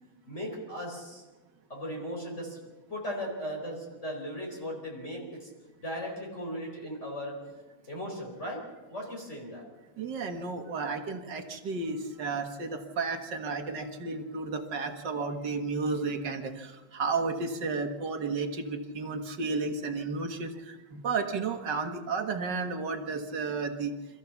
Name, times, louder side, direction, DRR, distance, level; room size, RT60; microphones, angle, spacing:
voice 1, 0.3-1.2 1.7-2.6 2.9-5.5 5.8-7.4 7.9-8.6 8.9-9.6, equal, 35° left, -2 dB, 4.8 m, -37 dB
voice 2, 10.0-23.9, right 4 dB, 60° right, 6 dB, 2.2 m, -32 dB
26.5 x 14.5 x 7.2 m, 1.2 s
omnidirectional pair, 2.3 m